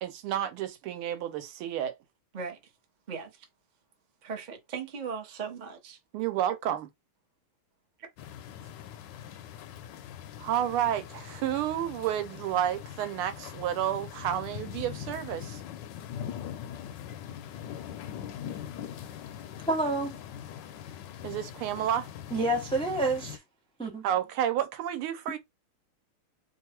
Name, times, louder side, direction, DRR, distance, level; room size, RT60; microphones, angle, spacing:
voice 1, 0.0-1.9 6.1-6.9 10.4-15.6 21.2-22.1 24.0-25.4, right 11 dB, 80° right, 1.5 m, -30 dB
voice 2, 2.3-2.7 3.1-3.4 4.2-6.0 6.5-6.6, right 6 dB, 50° right, 0.5 m, -38 dB
sound 1, 8.2-23.4, left 9 dB, 75° left, 1.0 m, -42 dB
voice 3, 19.7-20.2 22.3-23.4 23.8-24.0, right 2 dB, 5° left, 0.4 m, -28 dB
3.4 x 2.4 x 4.4 m
omnidirectional pair, 2.4 m